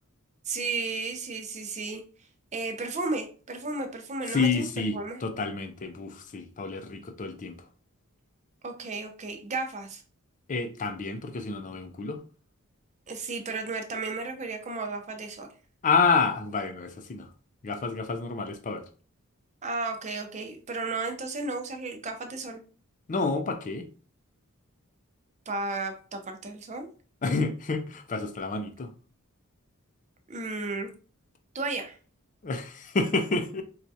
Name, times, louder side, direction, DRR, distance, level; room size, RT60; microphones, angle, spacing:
voice 1, 0.5-2.0 2.5-5.2 8.6-10.0 13.1-15.5 19.6-22.6 25.5-26.9 30.3-30.9 31.5-32.0, right 3 dB, 35° right, 0.6 m, -33 dB
voice 2, 4.3-7.6 10.5-12.2 15.8-17.3 17.6-18.9 23.1-23.9 27.2-28.9 32.4-33.6, left 4 dB, 35° left, 0.5 m, -29 dB
4.3 x 2.4 x 2.6 m
head